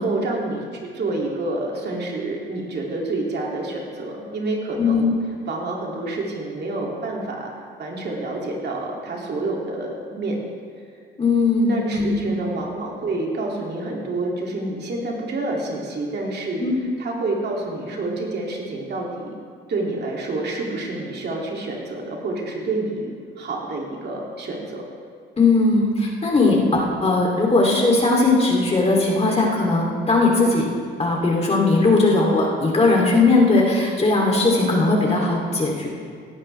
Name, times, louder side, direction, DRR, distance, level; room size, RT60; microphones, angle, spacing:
voice 1, 0.0-5.1 5.5-7.5 7.8-10.4 11.6-16.6 17.0-19.3 19.7-23.1 23.4-24.8, right 2 dB, 55° right, -2 dB, 2.4 m, -28 dB
voice 2, 4.8-5.1 11.2-12.3 16.6-16.7 25.4-30.7 31.0-35.9, left 3 dB, 30° left, -2 dB, 2.7 m, -18 dB
17.5 x 11.0 x 3.3 m, 2.1 s
cardioid pair, 90°, 20 cm